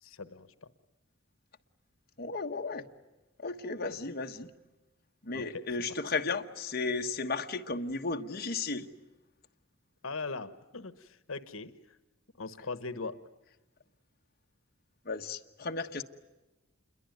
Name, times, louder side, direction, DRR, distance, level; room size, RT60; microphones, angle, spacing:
voice 1, 0.0-0.5 5.3-5.6 10.0-11.7 12.4-13.2, left 3 dB, 85° left, 1.1 m, -40 dB
voice 2, 2.2-2.8 3.4-4.5 5.2-8.9 15.0-16.0, left 3 dB, 50° left, 1.3 m, -34 dB
28.5 x 22.5 x 9.3 m
head